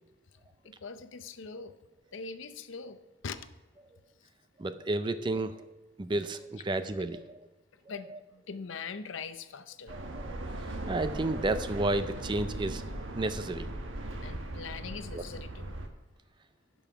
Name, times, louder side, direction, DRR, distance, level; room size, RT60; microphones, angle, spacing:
voice 1, 0.6-1.8 2.1-3.0 3.2-3.4 6.6-6.9 7.9-10.0 14.2-15.8, left 5 dB, 70° left, 11 dB, 0.6 m, -42 dB
voice 2, 4.6-5.6 6.0-7.5 7.9-8.2 9.9-12.8 13.1-13.7 15.1-15.2, right 2 dB, 25° right, 11 dB, 0.4 m, -32 dB
sound 1, 9.9-15.9, right 1 dB, 75° right, 1.1 m, -38 dB
11.0 x 5.4 x 5.7 m, 1.1 s
head